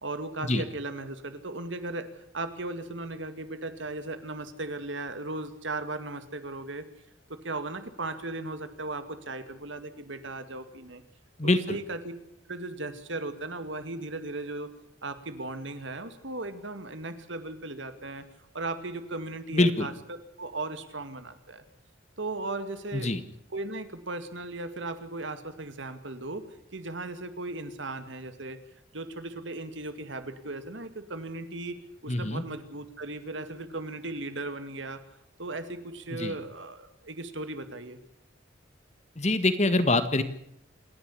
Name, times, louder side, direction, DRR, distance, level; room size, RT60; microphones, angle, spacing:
voice 1, 0.0-2.1 2.3-6.9 7.3-11.0 11.4-12.1 12.5-14.7 15.0-18.3 18.5-21.6 22.2-23.1 23.5-26.4 26.7-28.6 28.9-35.0 35.4-38.0, right 2 dB, 75° right, 10 dB, 2.2 m, -37 dB
voice 2, 11.4-11.8 19.5-19.9 22.9-23.2 32.1-32.4 36.2-36.3 39.2-40.2, left 2 dB, 35° left, 11 dB, 1.6 m, -24 dB
27.5 x 11.0 x 9.8 m, 0.77 s
head